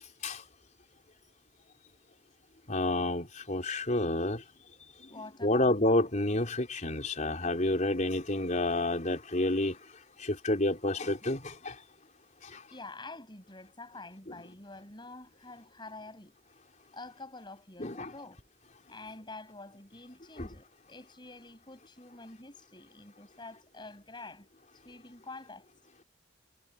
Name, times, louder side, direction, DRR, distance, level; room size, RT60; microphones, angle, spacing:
voice 1, 2.7-4.4 5.4-9.8 10.2-11.8 12.5-12.6 14.3-14.4 17.8-18.1 20.4-20.5, left 1 dB, 40° left, 4.1 m, -29 dB
voice 2, 5.1-5.8 12.7-16.3 16.9-18.4 18.9-24.5 24.7-25.7, left 2 dB, 25° left, 7.6 m, -47 dB
head